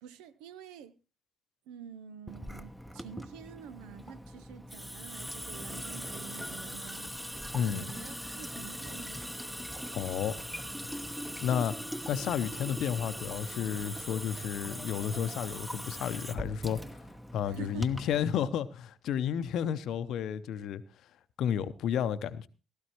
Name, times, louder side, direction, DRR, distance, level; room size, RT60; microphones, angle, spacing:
voice 1, 0.0-1.0 1.7-9.3 11.5-11.7 17.4-18.4, right 8 dB, 75° right, 0.6 m, -48 dB
Water tap faucet / Sink (filling or washing) / Drip, 2.3-18.2, equal, 5° right, 1.0 m, -41 dB
voice 2, 7.5-7.8 9.9-10.4 11.4-11.7 12.1-17.0 17.3-20.8 21.4-22.5, left 9 dB, 65° left, 0.7 m, -32 dB
16.5 x 13.5 x 3.0 m
hypercardioid pair, 45°, 0 cm